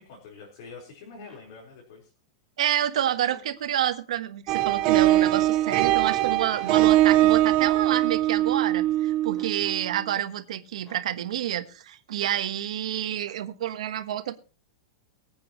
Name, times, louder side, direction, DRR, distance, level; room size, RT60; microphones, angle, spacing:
voice 1, 0.0-2.1 9.6-9.7, left 4 dB, 45° left, -2 dB, 4.4 m, -46 dB
sound 1, 1.3-1.5 3.2-3.5 5.1-5.3 6.6-6.8 7.9-8.1 9.3-9.6 10.8-11.1 12.2-12.4, right 1 dB, 10° left, 3.3 m, -52 dB
voice 2, 2.6-14.4, right 11 dB, 85° right, 9 dB, 1.3 m, -28 dB
sound 2, 4.5-10.0, right 15 dB, 30° right, 0.5 m, -22 dB
23.5 x 8.6 x 3.1 m, 0.37 s
supercardioid pair, 180°, 3 cm